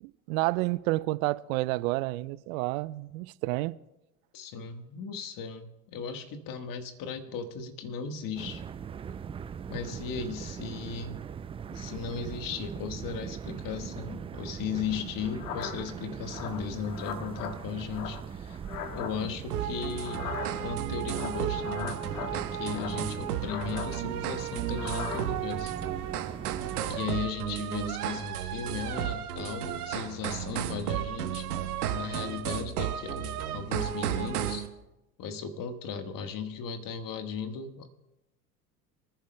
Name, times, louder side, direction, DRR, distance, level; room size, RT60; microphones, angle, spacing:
voice 1, 0.0-3.8, right 20 dB, 65° right, 0.5 m, -30 dB
voice 2, 4.3-8.6 9.7-11.2 11.7-18.6 18.9-20.3 20.6-25.7 26.9-31.5 31.9-34.6 35.2-37.9, left 6 dB, 45° left, 1.5 m, -36 dB
sound 1, 8.3-27.0, right 7 dB, 15° right, 0.3 m, -41 dB
sound 2, 15.2-15.9 16.3-17.6 17.9-19.1 20.0-20.7 21.1-22.3 22.7-23.9 24.7-25.3, left 8 dB, 75° left, 1.5 m, -39 dB
sound 3, 19.5-34.7, right 10 dB, 80° right, 1.2 m, -33 dB
26.0 x 10.0 x 2.2 m
hypercardioid pair, 80°, 44 cm